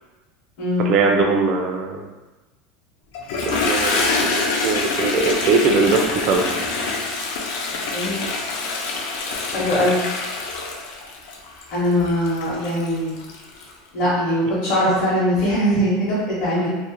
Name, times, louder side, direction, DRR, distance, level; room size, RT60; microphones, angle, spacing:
voice 1, 0.8-2.1 3.4-6.8, right 4 dB, 40° right, 2 dB, 0.3 m, -21 dB
Toilet flush, 3.1-13.7, left 3 dB, 75° left, 0.4 m, -25 dB
voice 2, 9.5-10.0 11.7-13.2 13.9-16.7, equal, 55° left, -10 dB, 0.8 m, -21 dB
2.4 x 2.1 x 2.9 m, 1.1 s
supercardioid pair, 165°, 0 cm